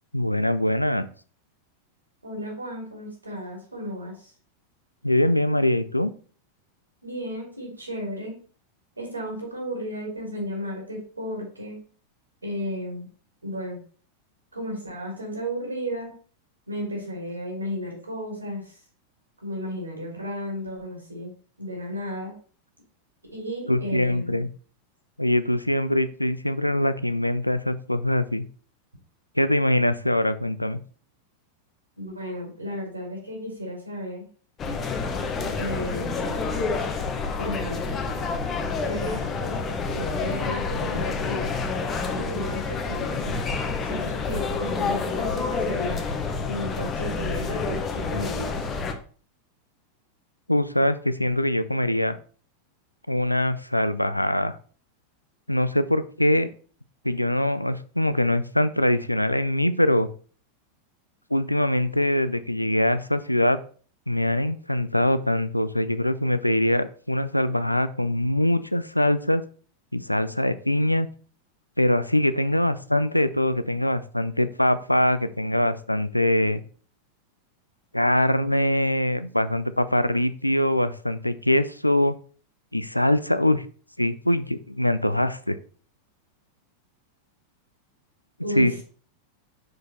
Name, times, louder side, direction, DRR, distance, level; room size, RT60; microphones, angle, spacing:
voice 1, 0.1-1.1 5.0-6.1 23.7-24.5 25.2-28.5 29.4-30.8 50.5-52.2 53.1-54.5 55.5-56.5 57.0-60.1 61.3-63.6 64.1-69.4 69.9-71.1 71.8-76.6 77.9-82.2 82.7-83.6 84.0-85.6 88.6-88.8, left 1 dB, 85° left, 14 dB, 0.4 m, -23 dB
voice 2, 2.2-4.3 7.0-8.4 9.0-11.8 12.4-13.1 13.4-13.8 14.5-16.1 16.7-18.8 19.4-22.3 23.3-24.4 32.0-34.2 35.5-36.7 37.4-38.0 38.8-41.5 42.1-43.4 43.8-46.0 46.5-48.5 88.4-88.8, equal, 80° right, 0 dB, 3.0 m, -34 dB
sound 1, 34.6-48.9, left 4 dB, 25° left, 1.0 m, -28 dB
6.4 x 4.7 x 4.2 m, 0.42 s
figure-of-eight pair, 90°, 0 cm